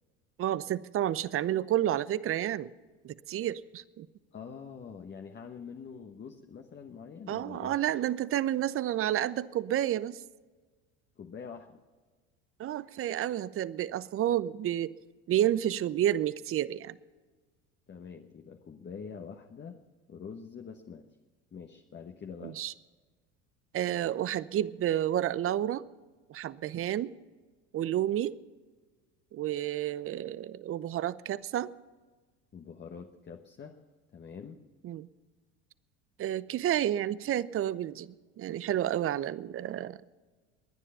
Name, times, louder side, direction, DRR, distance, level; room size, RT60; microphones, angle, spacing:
voice 1, 0.4-2.7 3.0-4.1 7.3-10.2 12.6-14.9 15.3-17.0 22.4-22.7 23.7-25.8 26.3-27.1 27.7-28.4 29.3-31.7 34.8-35.1 36.2-38.1 38.4-40.0, right 12 dB, 40° right, 18 dB, 0.7 m, -30 dB
voice 2, 4.3-7.8 11.2-11.8 17.9-19.8 20.1-21.0 21.5-22.6 32.5-33.8 34.1-34.6, left 6 dB, 30° left, 4 dB, 1.2 m, -45 dB
22.0 x 9.9 x 5.6 m, 1.4 s
hypercardioid pair, 75°, 34 cm